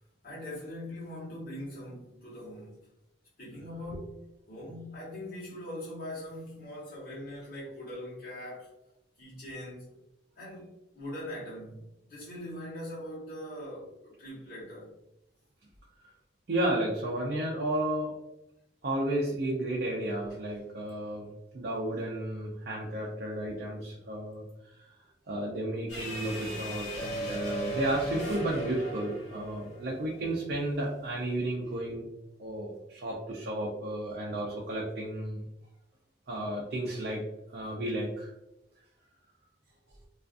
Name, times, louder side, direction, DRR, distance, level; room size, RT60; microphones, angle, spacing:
voice 1, 0.2-2.9 3.4-4.2 4.5-8.7 9.2-9.9 10.3-15.0, left 1 dB, 50° left, -8 dB, 1.1 m, -42 dB
voice 2, 16.5-18.1 18.8-21.3 21.5-25.0 25.3-32.1 32.4-35.4 36.3-37.2 37.5-38.3, right 1 dB, 55° right, -3 dB, 0.5 m, -33 dB
sound 1, 25.9-30.3, right 1 dB, 75° left, 1.0 m, -37 dB
2.4 x 2.3 x 2.4 m, 0.88 s
head